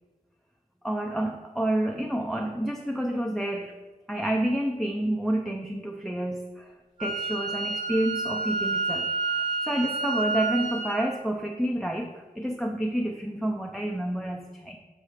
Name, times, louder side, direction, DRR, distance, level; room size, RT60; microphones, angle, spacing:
voice 1, 0.8-3.8 4.1-6.7 7.0-9.1 9.3-14.8, right 1 dB, ahead, 2 dB, 0.6 m, -29 dB
Wind instrument woodwind instrument, 7.0-11.0, right 3 dB, 35° right, 1.8 m, -29 dB
7.3 x 4.1 x 4.9 m, 1.2 s
wide cardioid pair, 75°, 14 cm